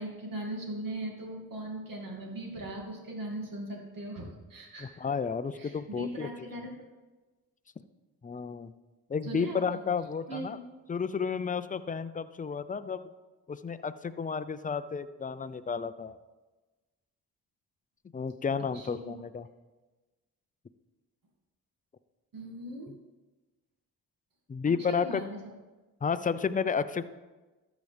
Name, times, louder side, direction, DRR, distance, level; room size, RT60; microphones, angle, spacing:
voice 1, 0.0-5.0 5.5-6.7 9.2-9.6 10.3-10.6 18.7-19.1 22.3-22.9 24.9-25.3, right 1 dB, 60° right, 0 dB, 2.4 m, -39 dB
voice 2, 4.8-6.3 8.2-8.7 9.1-10.6 10.9-13.0 13.5-16.1 18.1-19.5 22.9-23.0 24.5-25.2 26.0-27.0, left 6 dB, 20° left, 12 dB, 0.5 m, -32 dB
12.5 x 7.2 x 3.4 m, 1.2 s
cardioid pair, 60°, 37 cm